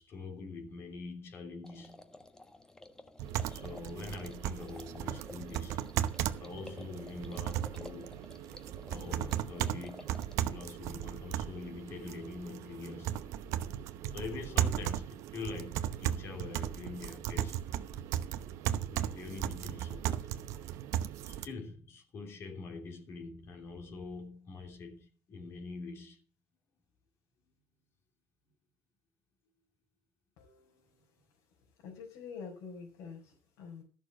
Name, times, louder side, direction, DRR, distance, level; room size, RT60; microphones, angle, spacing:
voice 1, 0.0-2.1 3.5-5.9 6.3-8.2 8.9-10.1 10.5-17.6 18.9-20.3 21.2-26.2, left 4 dB, 45° left, 3.0 m, -44 dB
sound 1, 1.6-10.4, left 2 dB, 10° left, 1.4 m, -53 dB
sound 2, 3.2-21.5, right 11 dB, 65° right, 0.9 m, -36 dB
voice 2, 30.4-31.0 31.8-33.8, left 5 dB, 75° left, 4.6 m, -47 dB
13.5 x 6.7 x 7.5 m
supercardioid pair, 100°, 6 cm